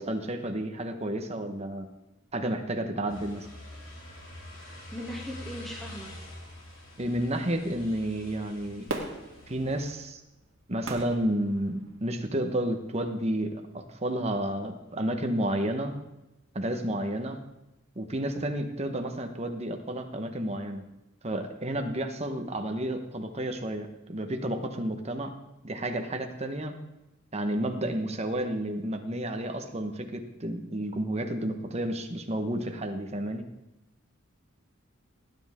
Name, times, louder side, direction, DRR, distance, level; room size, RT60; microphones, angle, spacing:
voice 1, 0.0-1.9 2.3-3.5 7.0-8.9 9.5-10.2 10.7-15.9 16.5-17.4 17.9-20.8 21.2-25.3 25.6-26.7 27.3-33.4, right 1 dB, 30° right, 5 dB, 1.2 m, -31 dB
sound 1, 3.1-10.0, left 1 dB, 75° left, 3.7 m, -46 dB
voice 2, 4.9-6.1 18.3-18.5, left 1 dB, ahead, -3 dB, 2.4 m, -39 dB
Fireworks, 8.9-12.2 12.8-12.9, right 2 dB, 75° right, 1.9 m, -39 dB
18.5 x 9.9 x 3.7 m, 0.97 s
head